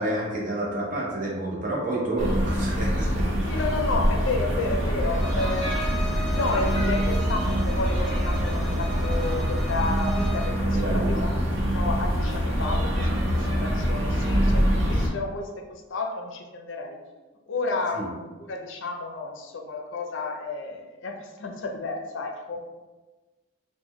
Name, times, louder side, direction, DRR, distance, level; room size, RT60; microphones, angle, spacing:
voice 1, 0.0-3.4 10.7-11.2 17.9-18.1, right 1 dB, 40° right, -4 dB, 0.7 m, -29 dB
sound 1, 2.2-15.1, equal, 75° right, 0.8 m, -25 dB
voice 2, 3.5-6.0 6.3-17.0 17.5-22.6, left 3 dB, 70° left, 3 dB, 0.4 m, -32 dB
Bowed string instrument, 5.0-10.6, right 3 dB, ahead, 0.4 m, -37 dB
3.8 x 2.1 x 3.0 m, 1.2 s
head